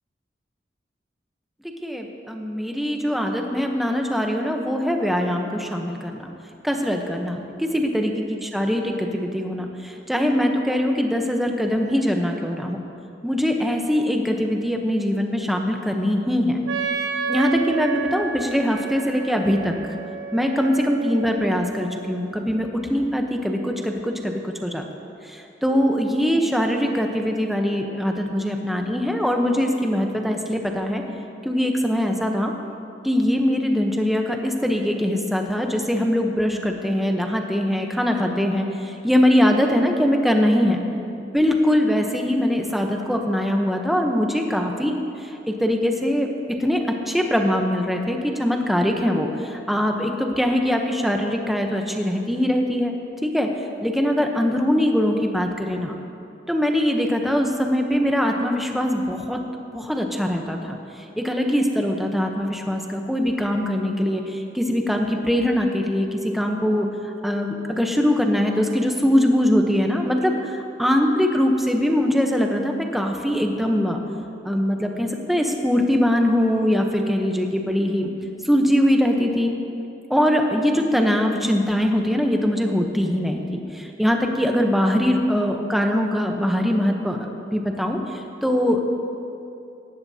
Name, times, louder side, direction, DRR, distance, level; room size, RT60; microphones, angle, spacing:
voice 1, 1.8-6.2 6.6-12.8 13.2-16.6 17.3-19.8 20.3-24.8 25.2-31.0 31.4-32.5 33.0-40.8 41.2-46.3 46.6-52.9 53.2-53.5 53.8-56.0 56.5-59.4 59.7-66.9 67.2-70.5 70.8-74.0 74.4-78.1 78.4-79.5 80.1-88.9, equal, ahead, 2 dB, 0.8 m, -22 dB
Wind instrument woodwind instrument, 16.7-22.3, right 5 dB, 80° right, 1.1 m, -31 dB
18.5 x 14.5 x 2.8 m, 2.7 s
head